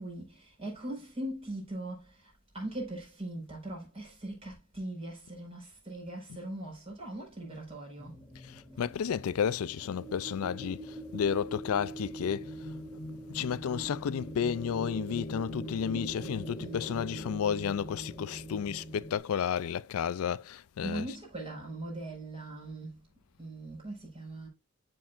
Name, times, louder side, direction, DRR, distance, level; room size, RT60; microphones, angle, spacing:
voice 1, 0.0-8.2 8.7-8.8 15.9-16.2 16.6-16.8 20.8-23.1 23.4-24.5, right 1 dB, 25° right, 4.8 m, -40 dB
sound 1, 8.0-19.2, right 1 dB, 5° left, 3.1 m, -42 dB
voice 2, 8.5-12.5 13.3-21.1, left 7 dB, 70° left, 0.4 m, -32 dB
13.0 x 4.6 x 2.5 m
head